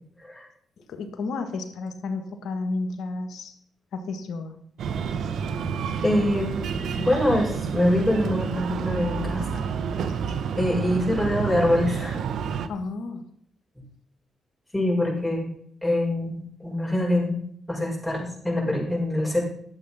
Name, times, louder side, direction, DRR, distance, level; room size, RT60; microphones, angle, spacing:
voice 1, 0.9-3.5 3.9-4.6 10.3-10.4 12.7-13.2, left 3 dB, 75° left, 7 dB, 1.6 m, -32 dB
Breathing, 4.8-12.7, right 6 dB, 75° right, 0.8 m, -29 dB
voice 2, 6.0-9.6 10.6-12.2 13.8-13.9 14.7-15.5 15.8-17.4 17.7-19.4, left 1 dB, 5° left, -5 dB, 6.2 m, -24 dB
11.5 x 7.6 x 5.8 m, 0.66 s
supercardioid pair, 60°, 0 cm